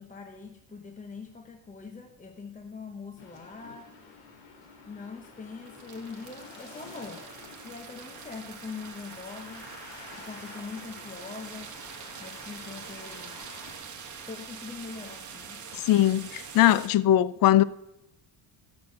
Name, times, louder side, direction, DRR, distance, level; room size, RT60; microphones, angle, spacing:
voice 1, 0.0-3.9 4.9-7.3 7.6-9.7 10.1-11.7 12.2-13.4 14.3-15.7, left 4 dB, 15° left, 1.0 m, -42 dB
sound 1, 3.2-13.7, left 4 dB, 70° left, 2.6 m, -49 dB
sound 2, 5.4-16.9, right 6 dB, 35° right, 2.0 m, -44 dB
voice 2, 15.7-17.6, left 13 dB, 45° left, 0.5 m, -21 dB
14.0 x 6.3 x 7.7 m
cardioid pair, 150°, 48 cm